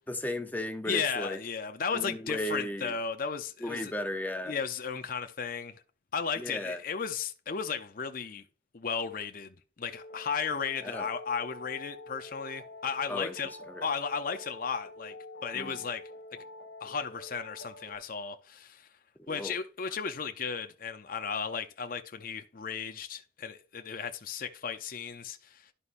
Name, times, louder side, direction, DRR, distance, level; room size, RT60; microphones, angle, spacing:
voice 1, 0.1-1.4 1.9-3.0 3.6-4.6 6.4-6.8 10.8-11.1 13.1-13.9 15.5-15.8 19.2-19.6, left 1 dB, 10° left, 0.8 m, -35 dB
voice 2, 0.9-3.9 4.5-5.8 6.1-8.4 8.7-13.5 13.8-15.1 15.4-16.0 16.8-18.9 19.3-25.7, left 6 dB, 50° left, 0.6 m, -35 dB
sound 1, 9.9-18.0, left 2 dB, 75° left, 1.1 m, -47 dB
11.5 x 5.5 x 2.6 m
head